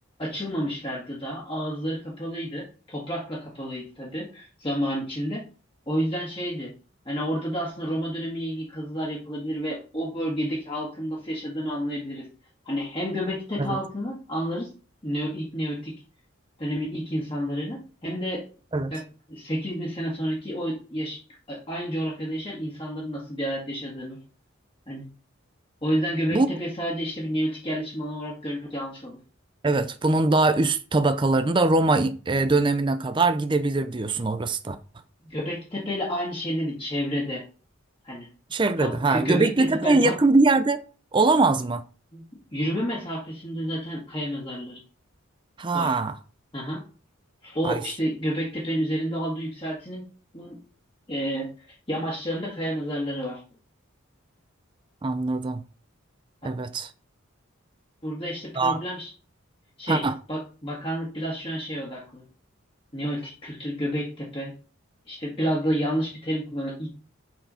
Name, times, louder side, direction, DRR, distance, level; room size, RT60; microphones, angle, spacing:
voice 1, 0.2-5.4 5.9-6.7 7.0-12.3 12.6-14.7 15.0-15.9 16.6-18.4 18.9-19.0 19.3-21.2 21.5-24.2 24.9-25.0 25.8-29.2 35.2-37.4 38.0-38.3 38.8-40.1 42.1-42.2 42.5-44.8 45.7-46.0 46.5-46.8 47.4-50.0 50.3-50.6 51.1-53.4 56.4-56.5 58.0-59.1 59.8-62.2 62.9-64.5 65.1-66.9, equal, 25° left, 1.8 m, -30 dB
voice 2, 29.6-34.8 38.5-40.8 41.1-41.8 45.6-46.1 47.6-47.8 55.0-55.6 56.4-56.9 58.6-58.8 59.9-60.1, right 3 dB, 20° right, 0.4 m, -22 dB
7.9 x 4.5 x 5.6 m
head